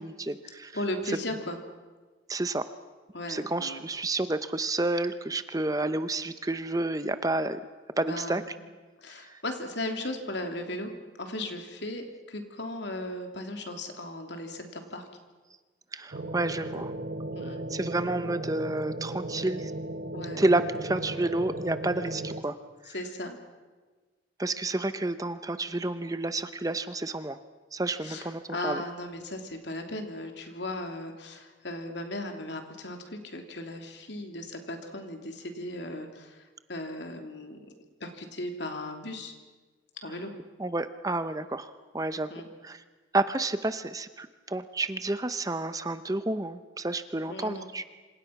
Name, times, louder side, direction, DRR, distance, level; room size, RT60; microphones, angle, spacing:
voice 1, 0.0-0.8 1.1-1.2 2.3-2.7 3.3-7.6 8.0-8.6 9.1-9.4 15.9-16.9 17.5-19.7 20.4-22.6 22.8-22.9 24.4-27.4 27.7-28.8 40.1-40.2 40.6-42.3 42.6-42.8 43.1-47.8, right 2 dB, 20° right, 11 dB, 0.7 m, -30 dB
voice 2, 0.7-1.6 3.1-3.8 8.0-8.4 9.0-10.9 11.2-15.0 17.3-17.6 20.1-20.4 22.9-23.4 28.0-36.4 36.7-37.6 38.0-39.3 40.0-40.3 42.3-42.5 47.3-47.7, left 1 dB, 65° left, 4 dB, 3.1 m, -36 dB
sound 1, 16.1-22.4, right 1 dB, 50° right, 1.1 m, -36 dB
26.5 x 26.5 x 5.9 m, 1.3 s
head